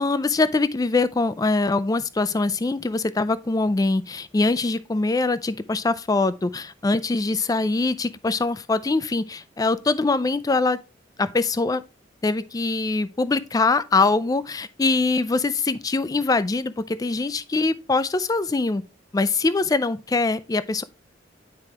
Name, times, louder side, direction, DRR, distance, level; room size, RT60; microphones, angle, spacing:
voice 1, 0.0-10.8 11.2-11.8 12.2-18.8 19.1-20.8, left 3 dB, 20° left, 0.4 m, -23 dB
9.7 x 4.7 x 2.8 m
head